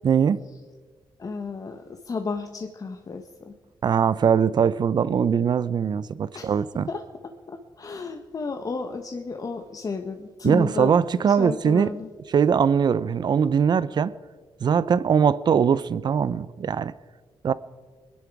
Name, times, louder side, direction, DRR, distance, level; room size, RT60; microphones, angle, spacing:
voice 1, 0.0-0.4 3.8-6.9 10.4-11.9 12.3-14.1 14.6-16.9 17.4-17.5, right 7 dB, 55° right, 0.6 m, -21 dB
voice 2, 1.2-3.6 6.3-6.6 6.9-10.9 11.2-12.1, left 4 dB, 45° left, 1.0 m, -33 dB
22.5 x 10.5 x 4.7 m
cardioid pair, 80°, 9 cm